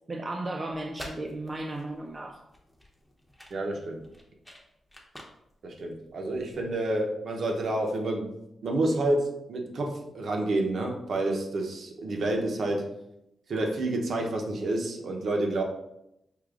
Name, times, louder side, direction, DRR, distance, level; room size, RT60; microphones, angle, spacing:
voice 1, 0.1-2.4, right 2 dB, 30° right, 2 dB, 0.4 m, -35 dB
sound 1, 0.7-6.7, left 1 dB, 5° left, 0.7 m, -49 dB
voice 2, 3.5-4.0 5.6-8.3 8.6-12.8 13.5-15.6, right 2 dB, 65° right, 2 dB, 0.7 m, -29 dB
4.9 x 2.8 x 2.4 m, 0.83 s
cardioid pair, 110°, 0 cm